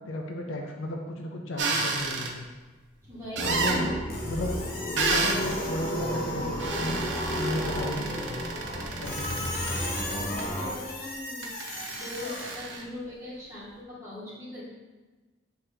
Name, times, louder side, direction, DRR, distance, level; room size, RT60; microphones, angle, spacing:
voice 1, 0.1-2.5 3.4-4.6 4.9-7.0 7.4-8.5 9.0-9.8, left 1 dB, 85° left, 1 dB, 0.5 m, -34 dB
sound 1, 1.6-2.3 3.3-3.8 5.0-5.4 6.6-10.4 11.4-12.8, right 4 dB, 65° right, 0.6 m, -30 dB
voice 2, 3.0-3.7 10.1-14.6, left 1 dB, 15° right, -11 dB, 1.2 m, -41 dB
sound 2, 3.3-10.7, equal, 15° left, 0.4 m, -32 dB
Squeak, 4.1-6.9 9.0-12.6, left 2 dB, 50° left, 0.7 m, -38 dB
5.5 x 2.9 x 3.3 m, 1.2 s
head